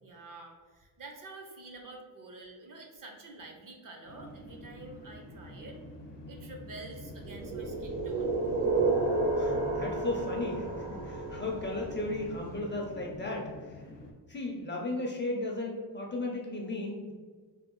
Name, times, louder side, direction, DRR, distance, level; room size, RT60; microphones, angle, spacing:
voice 1, 0.0-5.8 6.3-8.3, right 2 dB, 50° right, 2 dB, 0.6 m, -48 dB
sound 1, 4.0-14.1, left 1 dB, 80° left, 0.7 m, -47 dB
sound 2, 7.2-12.2, right 3 dB, 85° right, 1.2 m, -31 dB
voice 2, 9.4-13.8 14.3-17.1, left 2 dB, 30° left, -1 dB, 0.4 m, -35 dB
3.3 x 2.2 x 3.0 m, 1.5 s
wide cardioid pair, 145°, 41 cm